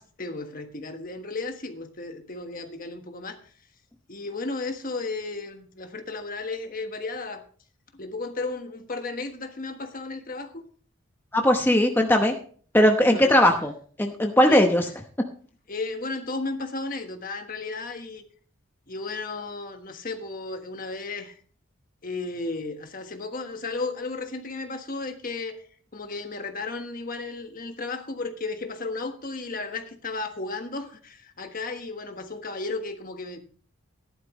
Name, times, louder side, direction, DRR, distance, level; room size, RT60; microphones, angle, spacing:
voice 1, 0.2-3.4 4.1-7.4 7.9-10.6 13.0-13.4 14.5-14.6 15.7-18.2 18.9-21.4 22.0-25.6 25.9-33.4, left 3 dB, 45° left, 1.4 m, -34 dB
voice 2, 11.3-12.3 12.7-13.7 14.0-14.8, left 1 dB, 10° left, 0.9 m, -19 dB
13.5 x 11.5 x 3.1 m
head